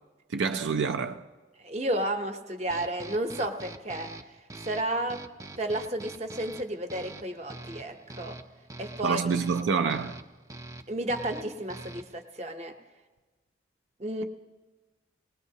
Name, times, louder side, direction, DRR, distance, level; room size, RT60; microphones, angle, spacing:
voice 1, 0.3-1.2 9.0-10.2, right 5 dB, 85° right, 0.4 m, -27 dB
voice 2, 1.6-4.1 4.6-5.2 5.6-8.4 8.8-9.2 10.9-12.7 14.0-14.2, right 1 dB, 35° right, 0.7 m, -32 dB
sound 1, 2.7-12.2, right 2 dB, 15° right, 0.3 m, -45 dB
19.0 x 18.5 x 2.8 m
head